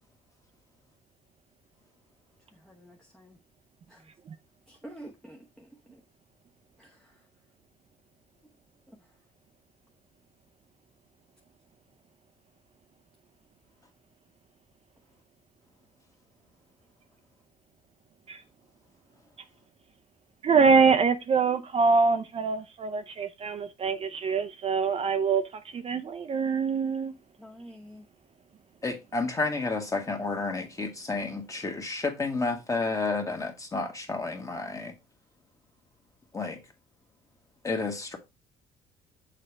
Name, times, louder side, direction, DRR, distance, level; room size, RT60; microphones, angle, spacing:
voice 1, 2.5-3.4 3.9-4.1 4.7-6.0 6.8-7.2 8.9-9.0 27.4-28.1, right 1 dB, 5° left, 0.8 m, -49 dB
voice 2, 20.4-25.4 25.7-27.1, right 5 dB, 35° right, 0.5 m, -24 dB
voice 3, 28.8-34.9 36.3-36.6 37.6-38.2, left 3 dB, 20° left, 1.5 m, -31 dB
6.5 x 4.9 x 3.3 m
cardioid pair, 110°, 17 cm